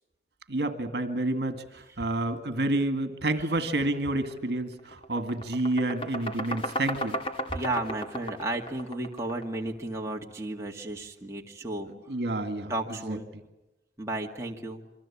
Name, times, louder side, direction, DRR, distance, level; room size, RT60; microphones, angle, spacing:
voice 1, 0.5-7.2 12.1-12.7 13.1-13.2, right 2 dB, 70° right, 9 dB, 1.9 m, -29 dB
sound 1, 4.2-4.4 4.7-9.7, equal, 30° left, 2.2 m, -34 dB
voice 2, 7.5-11.9 12.7-13.3 14.0-14.8, right 2 dB, 15° right, 0 dB, 2.0 m, -33 dB
27.5 x 24.0 x 8.6 m, 0.99 s
head